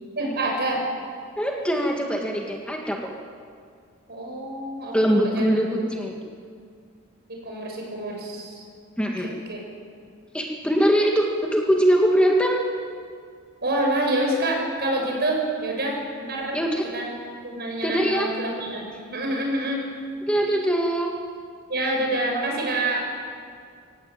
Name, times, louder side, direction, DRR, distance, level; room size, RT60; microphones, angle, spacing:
voice 1, 0.2-0.8 4.1-5.0 5.2-5.6 7.3-8.6 9.2-9.6 13.6-16.6 16.9-17.1 17.4-19.9 21.7-23.1, right 1 dB, 50° right, 0 dB, 6.6 m, -27 dB
voice 2, 1.4-3.1 4.9-6.2 9.0-9.3 10.3-12.6 16.5-16.8 17.8-18.3 20.3-21.1, equal, 5° left, 0 dB, 1.8 m, -22 dB
24.5 x 17.0 x 8.9 m, 2.1 s
head